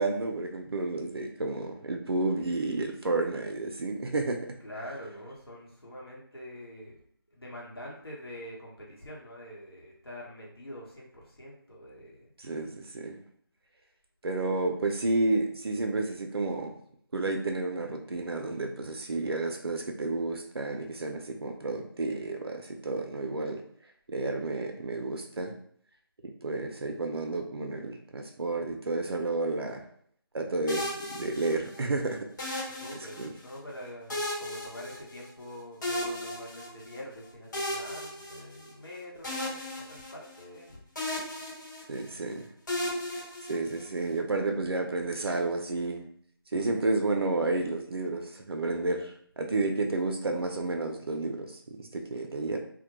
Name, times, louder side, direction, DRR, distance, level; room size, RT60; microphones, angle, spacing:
voice 1, 0.0-4.4 12.4-13.2 14.2-16.7 17.1-23.6 24.1-25.5 26.2-29.8 30.3-32.3 33.2-33.3 41.9-42.5 43.1-46.0 46.5-52.6, right 2 dB, 85° right, 3 dB, 0.4 m, -31 dB
voice 2, 4.6-7.0 7.3-12.3 32.7-40.8, equal, 90° left, -4 dB, 1.0 m, -45 dB
sound 1, 30.7-31.8 32.4-33.5 34.1-35.5 35.8-37.0 37.5-38.9 39.2-40.6 41.0-42.2 42.7-44.0, left 1 dB, 50° left, 0.9 m, -35 dB
2.1 x 2.1 x 2.8 m, 0.62 s
figure-of-eight pair, 165°, 13 cm